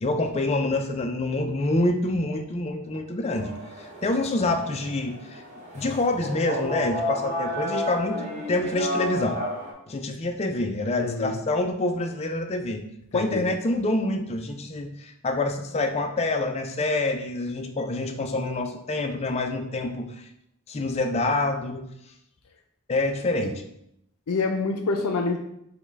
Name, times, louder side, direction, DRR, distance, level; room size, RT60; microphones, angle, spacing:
voice 1, 0.0-3.5 3.8-5.4 5.7-9.4 9.9-12.8 13.1-20.3 20.7-21.9 22.9-23.6, left 2 dB, 30° left, 5 dB, 0.4 m, -26 dB
sound 1, 3.4-9.7, left 1 dB, 30° right, 0.9 m, -32 dB
voice 2, 11.0-11.4 13.1-13.4 24.3-25.4, left 3 dB, 90° left, 4 dB, 0.5 m, -26 dB
5.2 x 2.2 x 4.5 m, 0.78 s
head